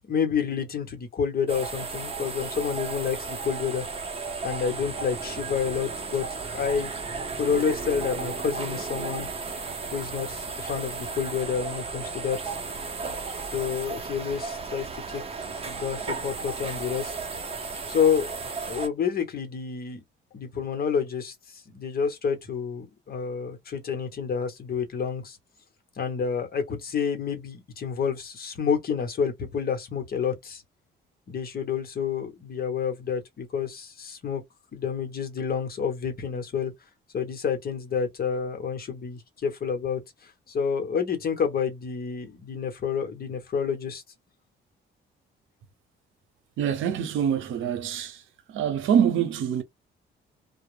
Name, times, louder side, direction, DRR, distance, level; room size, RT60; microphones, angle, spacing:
voice 1, 0.1-3.8 4.4-6.3 6.5-6.9 7.4-9.3 9.9-12.6 13.5-15.2 15.6-17.1 17.9-18.3 18.7-20.0 20.3-25.4 26.0-30.6 31.3-34.4 34.7-36.7 37.1-44.0, left 6 dB, 50° left, 1.0 m, -29 dB
sound 1, 1.5-18.9, right 4 dB, 30° right, 0.7 m, -34 dB
voice 2, 46.6-48.2 48.5-49.6, right 8 dB, 80° right, 0.7 m, -25 dB
2.1 x 2.0 x 3.1 m
cardioid pair, 90°, 20 cm